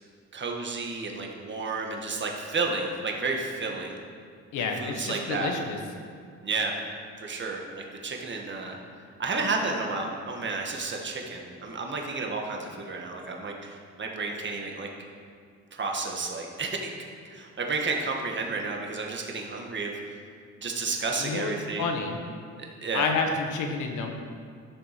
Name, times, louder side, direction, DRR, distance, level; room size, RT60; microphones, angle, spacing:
voice 1, 0.3-4.0 4.6-5.5 6.4-6.7 7.2-8.8 9.2-14.9 15.7-16.9 17.3-19.9 20.6-21.9 22.8-23.1, right 3 dB, 40° right, 1 dB, 1.6 m, -31 dB
voice 2, 4.5-5.8 21.2-22.2 22.9-24.2, left 4 dB, 85° left, 3 dB, 1.4 m, -29 dB
12.0 x 7.0 x 5.2 m, 2.2 s
cardioid pair, 90°, 30 cm